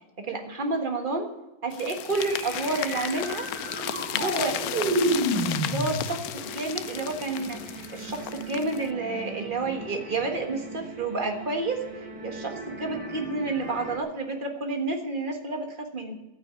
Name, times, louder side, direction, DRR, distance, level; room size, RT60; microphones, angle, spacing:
voice 1, 0.2-1.3 1.6-3.5 4.1-4.6 5.6-16.1, right 3 dB, 30° right, 3 dB, 1.6 m, -30 dB
sound 1, 1.7-8.9, left 11 dB, 70° left, 1.0 m, -34 dB
sound 2, 2.1-14.0, right 1 dB, 90° right, 3.2 m, -33 dB
13.0 x 9.0 x 8.3 m, 1.1 s
omnidirectional pair, 1.7 m